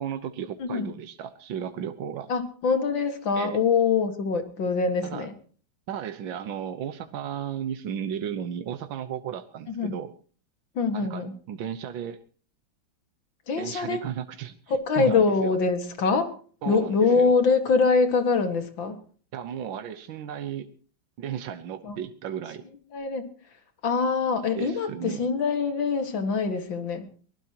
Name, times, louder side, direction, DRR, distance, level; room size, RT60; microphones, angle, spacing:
voice 1, 0.0-2.3 3.4-3.6 5.0-5.3 5.9-10.1 10.9-12.2 13.6-14.6 15.0-15.6 16.6-17.3 19.3-20.7 21.2-22.7 24.5-25.2, right 9 dB, 80° right, 9 dB, 1.8 m, -34 dB
voice 2, 2.3-5.3 9.8-9.9 10.8-11.3 13.5-14.0 14.7-16.3 16.7-19.0 21.9-22.0 22.9-23.3 23.8-27.1, left 4 dB, 80° left, 8 dB, 2.6 m, -24 dB
23.5 x 19.0 x 3.0 m, 0.43 s
omnidirectional pair, 2.1 m